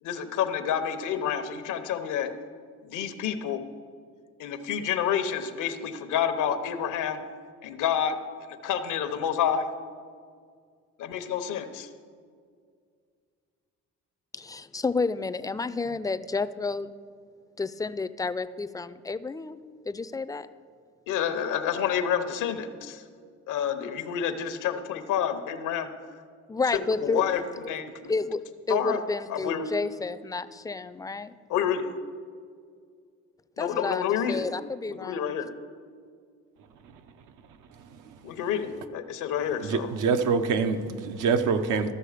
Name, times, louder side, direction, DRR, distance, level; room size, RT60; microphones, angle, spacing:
voice 1, 0.0-2.3 2.8-3.6 4.4-7.2 7.6-8.2 8.5-9.7 11.0-11.9 21.1-23.0 23.5-25.9 26.7-27.9 28.7-29.0 29.3-29.7 31.5-31.9 33.6-34.5 34.9-35.5 38.2-39.9, left 8 dB, 85° left, 0.8 m, -29 dB
voice 2, 14.3-16.9 17.6-19.6 19.9-20.5 26.5-27.2 28.1-28.4 28.7-31.3 33.6-35.3, left 4 dB, 10° left, 0.3 m, -30 dB
voice 3, 37.8-38.1 39.6-41.9, right 5 dB, 85° right, 0.7 m, -26 dB
14.0 x 6.3 x 4.9 m
cardioid pair, 90°, 30 cm